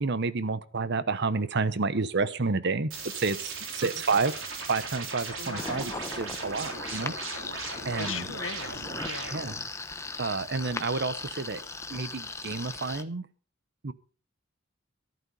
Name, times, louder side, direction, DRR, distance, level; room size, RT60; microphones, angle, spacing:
voice 1, 0.0-2.9 3.2-4.3 4.7-7.1 7.8-8.3 9.3-9.6 10.2-11.6 11.9-13.3 13.8-13.9, right 4 dB, 60° right, 15 dB, 0.9 m, -29 dB
sound 1, 2.9-9.6, right 4 dB, 90° right, 3.9 m, -38 dB
voice 2, 5.4-5.9 8.0-9.4, left 6 dB, 70° left, 12 dB, 1.2 m, -39 dB
sound 2, 5.6-13.0, left 3 dB, 15° left, 1.0 m, -38 dB
13.5 x 11.5 x 5.5 m, 0.39 s
head